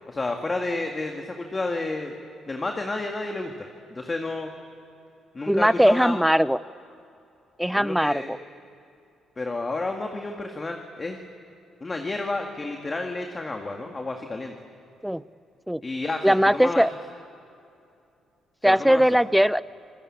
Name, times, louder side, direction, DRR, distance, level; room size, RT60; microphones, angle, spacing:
voice 1, 0.1-2.1 2.5-3.5 3.9-4.5 5.3-6.2 7.7-8.3 9.4-11.2 11.8-14.5 15.8-16.9 18.6-19.0, left 2 dB, 25° left, 3 dB, 2.0 m, -30 dB
voice 2, 5.5-6.6 7.6-8.4 15.0-15.2 15.7-15.8 16.2-16.9 18.6-19.6, equal, ahead, 18 dB, 0.5 m, -20 dB
26.0 x 19.5 x 8.8 m, 2.6 s
cardioid pair, 90°, 0 cm